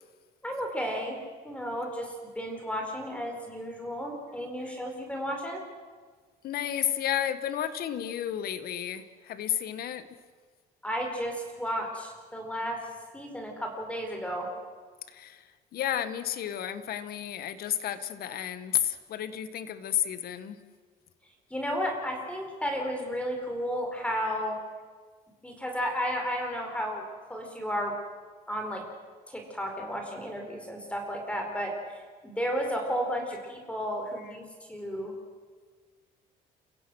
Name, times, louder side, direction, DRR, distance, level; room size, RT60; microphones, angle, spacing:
voice 1, 0.4-1.2 1.4-5.6 10.8-12.8 13.1-14.5 21.5-24.6 25.4-27.0 27.3-27.9 28.5-28.8 29.3-31.7 32.2-34.4 34.7-35.1, equal, 5° left, 2 dB, 4.4 m, -33 dB
voice 2, 6.4-10.1 15.1-20.6 34.2-34.3, left 10 dB, 65° left, 13 dB, 1.4 m, -32 dB
29.0 x 16.0 x 6.3 m, 1.5 s
cardioid pair, 110°, 17 cm